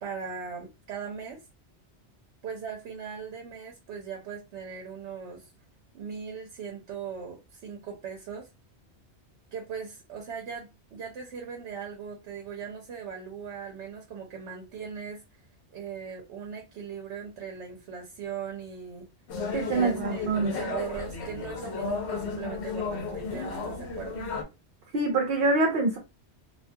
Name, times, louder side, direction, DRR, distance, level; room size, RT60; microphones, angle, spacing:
voice 1, 0.0-1.4 2.4-5.5 5.9-8.5 9.5-15.4 15.7-19.1 19.7-24.2, right 6 dB, 90° right, 0.9 m, -39 dB
sound 1, 19.3-24.4, left 4 dB, 75° left, 0.9 m, -33 dB
voice 2, 19.5-20.5 24.9-26.0, right 3 dB, 60° right, 0.8 m, -25 dB
2.5 x 2.2 x 2.6 m
omnidirectional pair, 1.1 m